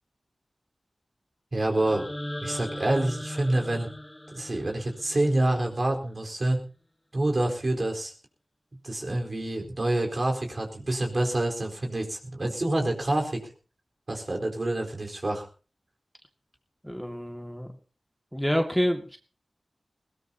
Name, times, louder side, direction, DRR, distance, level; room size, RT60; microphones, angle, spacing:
voice 1, 1.5-2.1 2.4-3.9 4.3-6.6 7.1-8.1 8.8-13.5 14.1-15.5, right 1 dB, 50° right, 1 dB, 4.3 m, -27 dB
sound 1, 1.7-5.7, left 1 dB, 15° left, 1.5 m, -39 dB
voice 2, 16.8-17.7 18.3-19.2, equal, ahead, 3 dB, 2.1 m, -27 dB
20.5 x 18.0 x 2.9 m, 0.36 s
wide cardioid pair, 50°, 0 cm